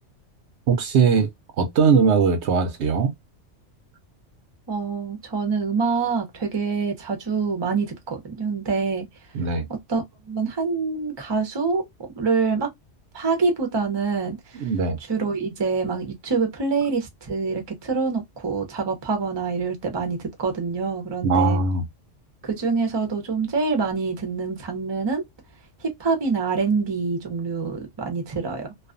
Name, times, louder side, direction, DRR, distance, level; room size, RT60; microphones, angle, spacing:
voice 1, 0.7-1.3 1.6-3.1 9.3-9.7 14.6-15.0 21.2-21.8, right 5 dB, 70° right, 0.8 m, -20 dB
voice 2, 4.7-9.1 9.9-10.0 10.3-11.9 12.2-12.7 13.1-14.6 15.1-21.6 22.4-25.3 25.8-28.7, right 4 dB, 30° right, 0.6 m, -25 dB
2.4 x 2.4 x 2.4 m
omnidirectional pair, 1.3 m